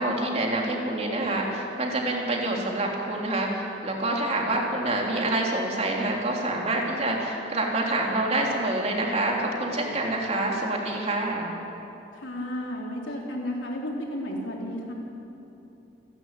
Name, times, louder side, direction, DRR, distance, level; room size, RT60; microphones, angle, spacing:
voice 1, 0.0-11.5, right 2 dB, 35° right, -1 dB, 3.3 m, -27 dB
voice 2, 12.1-14.9, left 1 dB, 75° left, -1 dB, 4.0 m, -33 dB
28.0 x 12.0 x 9.1 m, 2.9 s
head